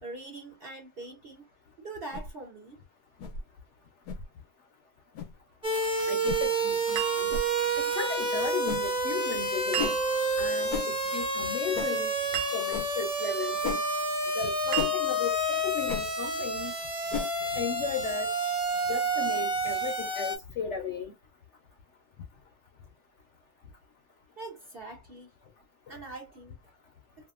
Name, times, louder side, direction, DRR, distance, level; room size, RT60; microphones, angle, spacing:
voice 1, 0.0-1.4 1.8-2.8 24.4-25.3 25.9-26.6, right 2 dB, 50° right, 0.7 m, -43 dB
sound 1, 2.1-2.3 3.2-3.4 4.1-4.2 5.1-5.3 6.2-6.4 7.3-7.5 8.7-8.9 9.8-10.0 10.7-10.9 11.7-11.9 12.7-12.9 13.6-13.8 14.7-14.9 15.9-16.0 17.1-17.3, left 6 dB, 80° left, 1.2 m, -33 dB
sound 2, 5.6-20.4, right 2 dB, 5° right, 0.7 m, -29 dB
voice 2, 6.1-7.3 7.9-9.9 10.4-12.1 12.5-13.6 14.3-16.7 17.6-18.3 18.9-21.1, left 6 dB, 60° left, 0.8 m, -35 dB
sound 3, 7.0-7.9 9.7-10.5 12.3-13.0 14.7-15.5, right 17 dB, 80° right, 1.1 m, -35 dB
2.7 x 2.4 x 2.4 m
omnidirectional pair, 1.7 m